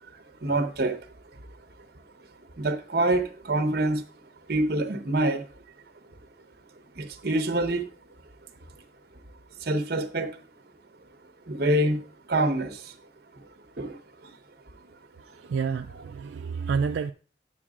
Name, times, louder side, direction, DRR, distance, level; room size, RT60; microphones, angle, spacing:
voice 1, 0.4-1.0 2.6-4.0 4.5-5.4 7.0-7.9 9.6-10.3 11.5-12.0 12.3-12.8 13.8-14.0, right 1 dB, 55° right, 0.9 m, -25 dB
voice 2, 15.3-17.1, right 5 dB, 80° right, 0.3 m, -29 dB
9.7 x 8.6 x 2.4 m
head